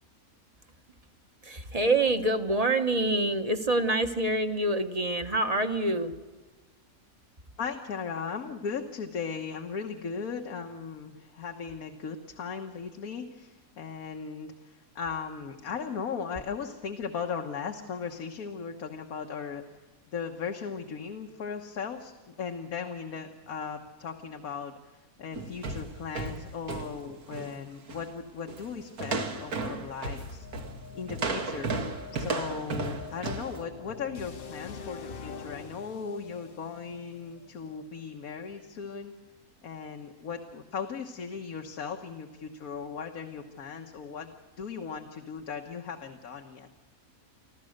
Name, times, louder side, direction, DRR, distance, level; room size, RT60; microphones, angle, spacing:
voice 1, 1.4-6.2, right 2 dB, 30° right, 7 dB, 1.0 m, -26 dB
voice 2, 7.6-19.6 20.1-30.5 30.9-31.7 32.1-39.1 39.6-44.3 44.6-46.7, left 6 dB, 80° left, 3 dB, 1.7 m, -37 dB
sound 1, 25.3-27.6 27.9-28.1 28.5-28.7 29.0-33.6, right 3 dB, 85° right, 2.2 m, -34 dB
sound 2, 30.2-38.1, left 6 dB, 45° left, 0.9 m, -45 dB
26.0 x 15.0 x 6.5 m, 1.3 s
omnidirectional pair, 1.5 m